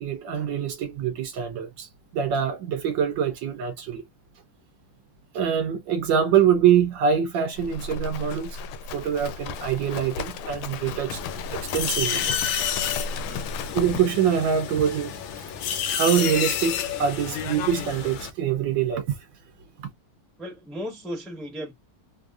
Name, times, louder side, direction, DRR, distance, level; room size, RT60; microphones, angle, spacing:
voice 1, 0.0-1.9 2.1-4.0 5.3-8.6 8.9-11.2 11.5-12.2 13.7-15.1 15.8-19.1, right 8 dB, 70° right, 1.2 m, -24 dB
Livestock farm animals working animals, 7.6-14.0, left 5 dB, 90° left, 1.5 m, -34 dB
sound 1, 11.1-18.3, left 8 dB, 70° left, 1.3 m, -30 dB
voice 2, 20.4-21.7, equal, ahead, 0.6 m, -35 dB
3.5 x 2.5 x 2.3 m
omnidirectional pair, 2.3 m